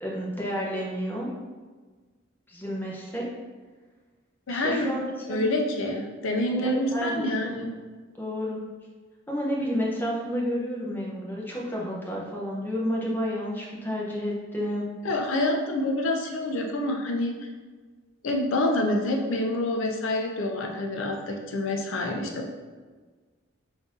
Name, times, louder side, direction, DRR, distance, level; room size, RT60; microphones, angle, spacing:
voice 1, 0.0-1.3 2.5-3.3 4.5-5.5 6.6-7.2 8.2-8.6 9.3-14.9, equal, 10° left, -4 dB, 0.6 m, -30 dB
voice 2, 4.5-4.9 5.3-7.7 15.0-17.3 18.2-22.5, left 1 dB, 75° left, 1 dB, 0.5 m, -27 dB
3.8 x 2.6 x 3.7 m, 1.4 s
head